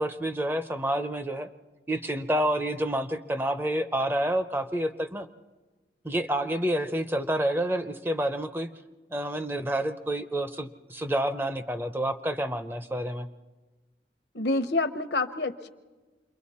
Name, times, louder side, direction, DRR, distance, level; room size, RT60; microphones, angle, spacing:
voice 1, 0.0-1.5 1.9-5.3 6.0-8.7 9.1-13.3, right 1 dB, 10° right, 10 dB, 0.5 m, -28 dB
voice 2, 14.3-15.7, left 2 dB, 70° left, 11 dB, 0.9 m, -27 dB
28.0 x 22.5 x 4.2 m, 1.3 s
head